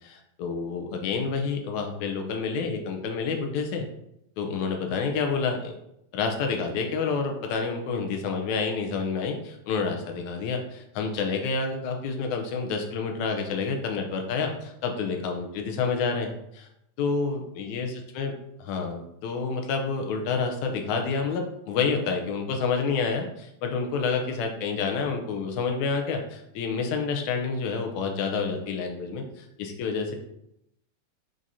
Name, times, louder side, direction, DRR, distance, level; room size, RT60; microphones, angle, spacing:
voice 1, 0.0-3.9 4.4-5.7 6.1-16.7 17.0-18.3 18.6-30.2, left 5 dB, 75° left, 3 dB, 2.2 m, -29 dB
6.3 x 5.6 x 2.7 m, 0.81 s
omnidirectional pair, 3.5 m